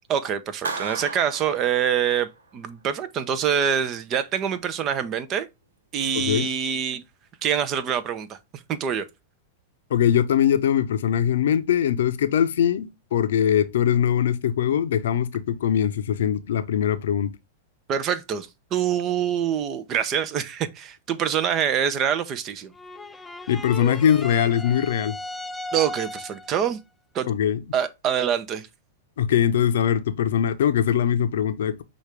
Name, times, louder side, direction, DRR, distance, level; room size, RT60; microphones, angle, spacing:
voice 1, 0.1-5.5 5.9-7.0 7.4-8.4 8.7-9.1 17.9-22.7 25.7-26.8 27.1-27.3 27.7-28.7, right 8 dB, 35° right, 0.6 m, -25 dB
Clapping, 0.6-2.5, right 3 dB, 90° right, 0.9 m, -35 dB
voice 2, 6.1-6.5 9.9-17.3 23.5-25.1 27.3-27.6 29.2-31.8, left 9 dB, 75° left, 0.6 m, -22 dB
sound 1, 22.7-26.6, left 2 dB, 10° left, 0.4 m, -36 dB
6.1 x 2.5 x 3.2 m
hypercardioid pair, 115°, 0 cm